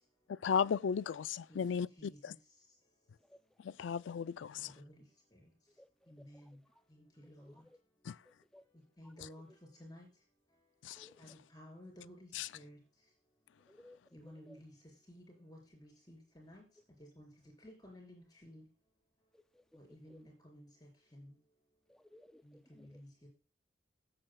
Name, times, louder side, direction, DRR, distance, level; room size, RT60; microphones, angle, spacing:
voice 1, 0.3-2.3 3.6-4.7 8.1-8.2 10.8-11.1 12.3-12.5, left 6 dB, 85° left, 0.4 m, -35 dB
voice 2, 1.5-2.4 4.5-5.0 5.3-5.5 6.1-6.6 6.9-7.6 9.0-9.5 9.7-10.1 11.2-12.8 14.1-14.7 15.1-16.7 17.0-17.3 17.6-18.7 19.7-21.4 22.4-23.3, equal, 20° left, 4.3 m, -55 dB
voice 3, 7.2-7.6 8.3-8.6 11.0-11.2 13.7-14.0 14.5-14.6 19.3-19.6 20.1-20.2 21.9-22.6 22.9-23.0, left 1 dB, 5° left, 0.3 m, -60 dB
15.0 x 7.8 x 2.2 m
head